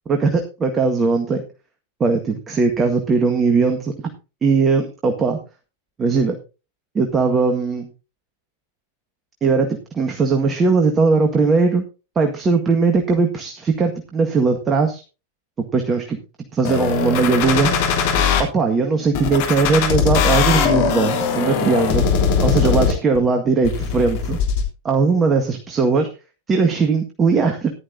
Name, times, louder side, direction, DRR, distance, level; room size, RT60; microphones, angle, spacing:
voice 1, 0.1-1.4 2.0-3.9 4.4-5.4 6.0-6.4 7.0-7.9 9.4-11.8 12.2-15.0 15.7-16.2 16.5-17.7 18.4-22.1 22.4-24.4 24.8-26.1 26.5-27.7, right 4 dB, 20° right, 4 dB, 1.8 m, -19 dB
sound 1, 16.6-18.4 19.1-23.2 23.6-24.6, left 6 dB, 50° left, 3.2 m, -20 dB
15.0 x 11.5 x 2.8 m, 0.31 s
figure-of-eight pair, 90°, 0 cm